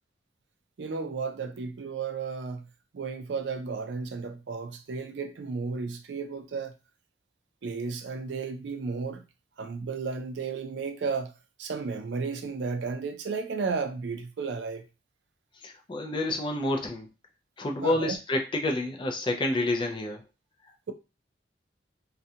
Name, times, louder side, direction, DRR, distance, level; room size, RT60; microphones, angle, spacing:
voice 1, 0.8-2.7 2.9-6.8 7.6-9.2 9.6-11.3 11.6-14.9 17.8-18.2, right 4 dB, 70° right, 0.4 m, -33 dB
voice 2, 15.6-17.1 17.6-20.2, left 1 dB, 25° left, 0.4 m, -29 dB
2.4 x 2.2 x 2.7 m
head